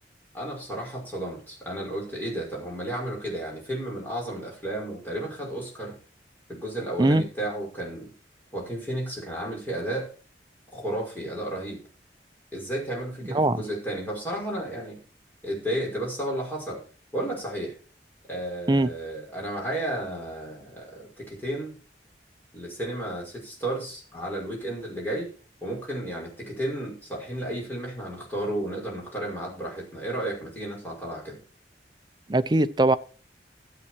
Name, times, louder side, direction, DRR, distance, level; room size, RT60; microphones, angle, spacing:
voice 1, 0.3-6.0 6.5-8.1 8.5-10.1 10.7-11.8 12.5-15.0 15.4-16.8 17.1-17.7 18.3-21.7 22.5-25.3 25.6-31.4, right 1 dB, 10° left, 5.8 m, -33 dB
voice 2, 32.3-33.0, right 2 dB, 25° right, 0.5 m, -21 dB
13.0 x 8.5 x 4.6 m
head